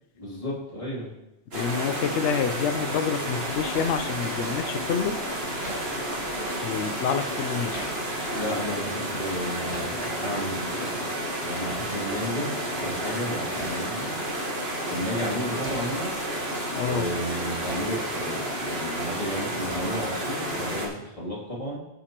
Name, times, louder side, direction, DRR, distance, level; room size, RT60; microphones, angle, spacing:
voice 1, 0.2-1.1 8.3-11.0 11.4-14.1 14.9-16.1 16.8-21.8, equal, 30° left, -6 dB, 2.6 m, -32 dB
voice 2, 1.5-5.2 6.6-7.9 16.7-17.1, left 7 dB, 80° left, 9 dB, 0.9 m, -28 dB
sound 1, 1.5-20.9, equal, 60° right, 1.8 m, -31 dB
Hammer, 3.7-4.0 5.6-5.9 7.7-8.0 9.7-10.0 11.7-11.9 13.6-13.8 15.6-15.9 17.7-17.9 19.7-20.0, right 1 dB, 80° right, 2.9 m, -39 dB
14.5 x 5.2 x 2.9 m, 0.92 s
omnidirectional pair, 1.2 m